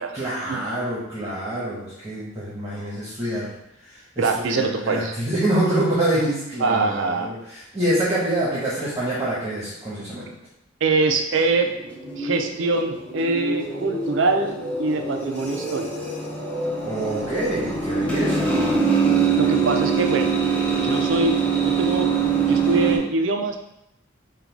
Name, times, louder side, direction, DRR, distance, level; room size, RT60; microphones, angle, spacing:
voice 1, 0.1-3.5 4.2-10.3 16.8-18.8, right 1 dB, 15° right, -8 dB, 1.0 m, -26 dB
voice 2, 4.2-5.1 6.6-7.3 10.8-11.7 12.2-15.9 19.4-20.3 20.8-21.4 21.6-22.1 22.5-23.6, right 3 dB, 70° right, 4 dB, 0.5 m, -23 dB
sound 1, 11.3-23.0, right 5 dB, 5° left, 0.7 m, -24 dB
3.8 x 2.3 x 4.5 m, 0.84 s
head